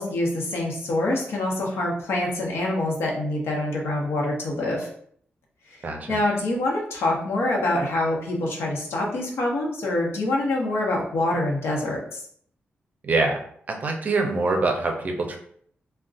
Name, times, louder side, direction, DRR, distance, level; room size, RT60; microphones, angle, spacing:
voice 1, 0.0-4.9 5.7-12.2, left 1 dB, 85° left, -2 dB, 0.8 m, -25 dB
voice 2, 5.8-6.2 13.0-13.4 13.7-15.4, right 3 dB, 40° right, 3 dB, 0.5 m, -24 dB
2.4 x 2.2 x 3.7 m, 0.63 s
wide cardioid pair, 165°, 4 cm